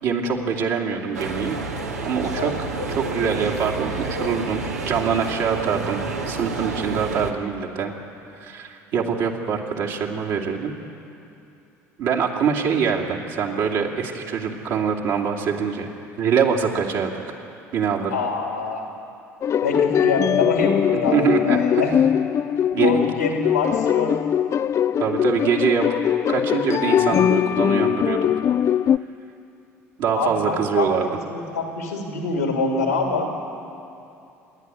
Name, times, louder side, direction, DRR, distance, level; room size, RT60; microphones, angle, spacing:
voice 1, 0.0-1.6 2.0-6.0 6.3-7.9 8.4-10.7 12.0-15.9 16.2-17.1 17.7-18.2 20.9-21.6 22.7-23.1 25.0-25.9 26.3-28.3 30.0-31.1, right 6 dB, 60° right, 0 dB, 2.6 m, -24 dB
sound 1, 1.1-7.3, right 3 dB, 85° right, 1.4 m, -29 dB
voice 2, 18.1-18.8 19.6-21.9 22.8-24.2 30.2-33.3, left 3 dB, 90° left, 2 dB, 3.0 m, -25 dB
sound 2, 19.4-29.0, left 9 dB, 35° left, 0.4 m, -21 dB
27.5 x 11.0 x 9.8 m, 2.8 s
figure-of-eight pair, 60°, 8 cm